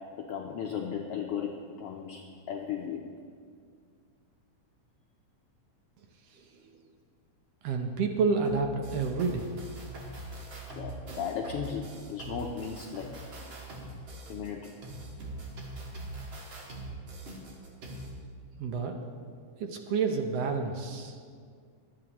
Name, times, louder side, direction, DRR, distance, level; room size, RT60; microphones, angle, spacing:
voice 1, 0.1-3.0 10.7-13.1 14.3-14.7, left 7 dB, 75° left, 1 dB, 1.4 m, -36 dB
voice 2, 6.3-6.6 7.6-9.5 18.6-19.0 19.6-21.2, right 4 dB, 70° right, 4 dB, 1.6 m, -29 dB
sound 1, 8.4-18.1, right 1 dB, 45° right, 2.3 m, -42 dB
23.0 x 8.7 x 3.0 m, 2.1 s
omnidirectional pair, 3.4 m